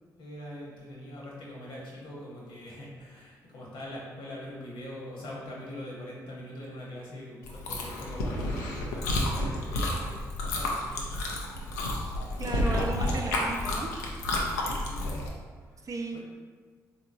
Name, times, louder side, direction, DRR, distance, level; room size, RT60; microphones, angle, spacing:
voice 1, 0.2-11.2 14.6-15.3 15.7-15.8 16.1-16.2, left 1 dB, 70° left, -4 dB, 1.0 m, -43 dB
Chewing mastication, 7.4-15.3, left 1 dB, 90° left, 0.4 m, -30 dB
voice 2, 12.4-13.9 15.8-16.2, right 3 dB, 40° right, 3 dB, 0.5 m, -34 dB
3.7 x 2.9 x 2.6 m, 1.6 s
hypercardioid pair, 40°, 9 cm